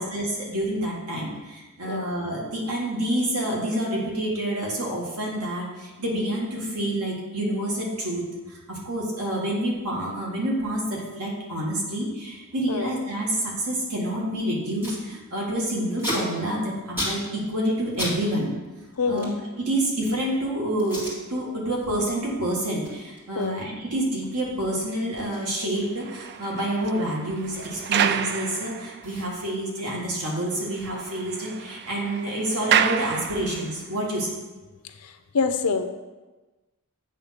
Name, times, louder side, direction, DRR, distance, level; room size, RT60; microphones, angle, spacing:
voice 1, 0.0-18.5 19.1-19.3 19.6-34.4, right 1 dB, 80° right, -3 dB, 1.8 m, -28 dB
Packing tape duct tape, 14.3-14.4 14.5-15.0 15.3-18.2 18.4-20.3 20.8-21.2 21.6-21.9 22.2-28.4 28.7-28.8 29.0-31.4 31.7-33.6, left 1 dB, 10° right, 2.2 m, -38 dB
voice 2, 19.0-19.3 23.4-23.6 35.0-35.9, left 4 dB, 85° left, 8 dB, 0.6 m, -26 dB
sound 1, 25.8-29.3 29.8-29.9 30.2-30.3 30.6-33.9, right 8 dB, 50° right, 0.3 m, -29 dB
8.3 x 3.6 x 5.8 m, 1.2 s
head